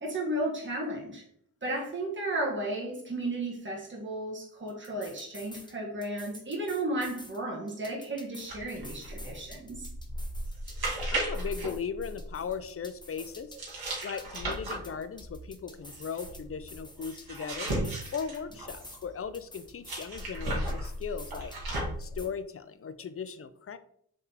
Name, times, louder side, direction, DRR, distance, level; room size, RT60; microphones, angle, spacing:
voice 1, 0.0-1.2 1.6-9.9, right 1 dB, 30° right, -3 dB, 1.2 m, -34 dB
sound 1, 4.7-5.7 6.0-7.4 7.7-11.1 11.3-13.7 14.0-16.4 16.7-19.1 19.3-21.7 22.0-22.3, left 2 dB, 10° left, 0.7 m, -49 dB
sound 2, 8.5-12.6 13.6-19.1 19.8-22.2, right 1 dB, 80° right, 1.4 m, -36 dB
voice 2, 11.1-13.5 14.0-17.7 18.1-21.5 22.0-23.8, left 6 dB, 40° left, 12 dB, 0.4 m, -38 dB
3.9 x 3.4 x 2.8 m, 0.65 s
cardioid pair, 45°, 36 cm